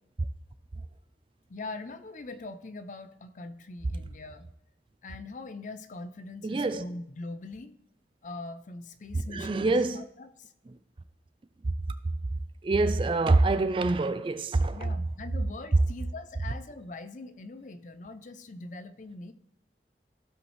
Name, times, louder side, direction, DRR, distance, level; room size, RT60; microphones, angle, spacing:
voice 1, 1.5-4.5 5.0-7.8 8.2-10.5 14.7-19.3, left 2 dB, 45° left, 0.5 m, -42 dB
voice 2, 6.4-6.8 9.3-10.0 11.6-11.7 12.6-14.9, right 2 dB, 30° right, 0.3 m, -25 dB
15.5 x 5.2 x 3.2 m
head